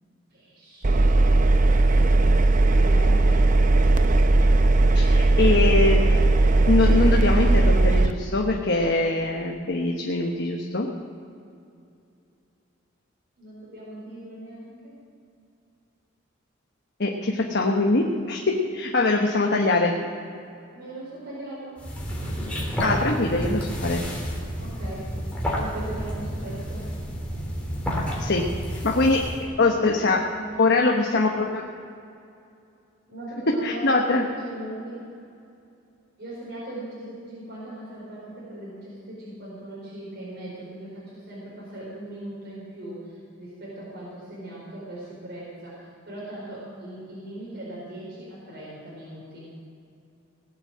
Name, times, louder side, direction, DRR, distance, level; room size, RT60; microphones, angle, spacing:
voice 1, 0.3-1.0 2.0-3.4 13.4-15.0 19.3-19.8 20.7-21.8 24.6-25.1 25.5-26.9 30.1-31.0 33.1-35.0 36.2-49.5, right 1 dB, 60° right, -6 dB, 4.8 m, -39 dB
Engine, 0.8-8.1, right 2 dB, 40° right, 0.6 m, -18 dB
voice 2, 4.9-6.0 6.7-10.9 17.0-18.4 18.7-19.9 22.8-24.0 28.2-28.4 28.8-29.2 29.6-30.2 30.6-31.6 33.6-34.2, left 3 dB, 55° left, 1 dB, 1.2 m, -22 dB
sound 1, 21.8-29.5, equal, 5° left, 3.1 m, -30 dB
18.0 x 8.5 x 7.6 m, 2.5 s
head